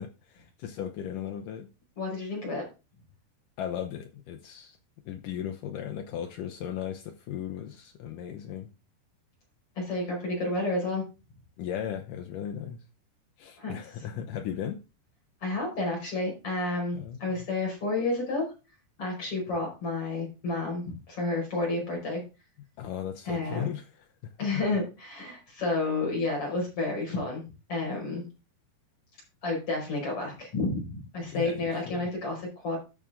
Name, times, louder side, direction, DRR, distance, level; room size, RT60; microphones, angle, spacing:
voice 1, 0.0-1.7 3.6-4.8 5.1-8.7 11.6-12.8 13.4-14.8 16.9-17.4 22.8-23.9 31.3-32.1, left 9 dB, 80° left, 1.9 m, -36 dB
voice 2, 2.0-2.6 9.8-11.0 13.6-13.7 15.4-18.5 19.0-22.2 23.3-23.7 24.4-27.4 27.7-28.2 29.4-32.8, left 2 dB, 35° left, 5.6 m, -30 dB
12.5 x 6.3 x 3.7 m
omnidirectional pair, 4.8 m